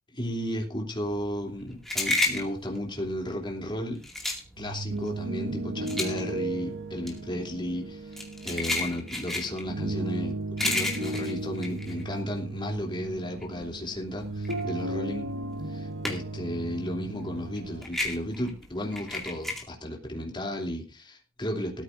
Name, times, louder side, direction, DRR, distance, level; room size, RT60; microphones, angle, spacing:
voice 1, 0.1-4.0 4.6-8.2 8.4-15.3 15.7-21.8, equal, 20° left, 0 dB, 3.0 m, -34 dB
sound 1, 1.1-12.7 13.1-16.5 16.8-19.6, left 2 dB, ahead, 2.2 m, -32 dB
sound 2, 4.4-17.8, right 2 dB, 60° right, 1.0 m, -35 dB
18.5 x 13.5 x 2.6 m, 0.29 s
head